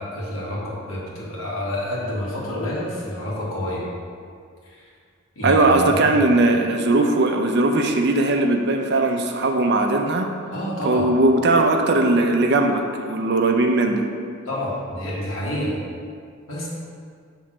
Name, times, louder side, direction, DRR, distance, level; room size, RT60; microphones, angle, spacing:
voice 1, 0.0-3.8 4.7-4.8 5.3-6.2 10.5-11.1 14.4-15.7 16.5-16.7, left 1 dB, 80° left, -5 dB, 1.7 m, -28 dB
voice 2, 5.4-10.3 10.8-14.0, right 2 dB, 55° right, 4 dB, 0.6 m, -19 dB
6.2 x 3.5 x 5.9 m, 2.1 s
head